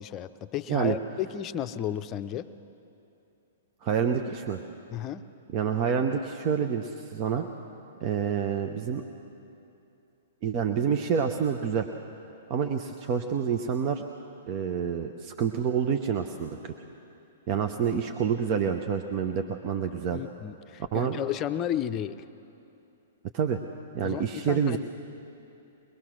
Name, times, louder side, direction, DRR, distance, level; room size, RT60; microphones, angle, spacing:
voice 1, 0.0-2.5 4.9-5.2 20.1-22.2 24.0-24.8, left 10 dB, 30° left, 10 dB, 0.6 m, -33 dB
voice 2, 3.8-4.6 5.5-7.5 8.0-9.0 10.4-11.9 12.5-14.0 14.5-16.7 17.5-20.2 20.9-21.2 23.3-23.6 23.9-24.8, right 7 dB, 40° right, 5 dB, 0.8 m, -28 dB
23.0 x 20.0 x 6.2 m, 2.8 s
figure-of-eight pair, 110°, 0 cm